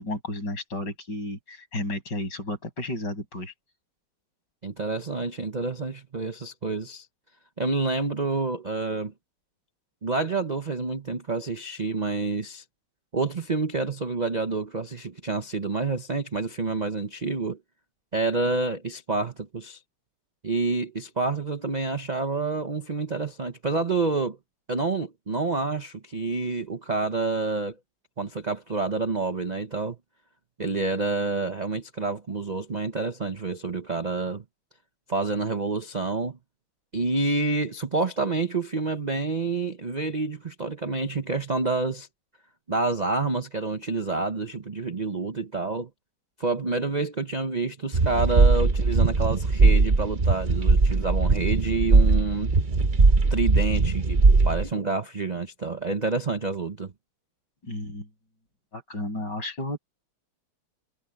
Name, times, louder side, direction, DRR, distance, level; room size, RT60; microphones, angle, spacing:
voice 1, 0.0-3.5 57.6-58.1 58.7-59.8, left 1 dB, 55° left, 8.0 m, -33 dB
voice 2, 4.6-7.1 7.6-9.1 10.0-12.6 13.1-17.6 18.1-19.8 20.4-24.4 24.7-27.8 28.2-30.0 30.6-34.4 35.1-36.4 36.9-42.1 42.7-45.9 46.4-52.6 53.3-56.9, right 3 dB, 50° right, 0.5 m, -28 dB
sound 1, 47.9-54.7, right 3 dB, 30° right, 0.9 m, -20 dB
omnidirectional pair, 2.3 m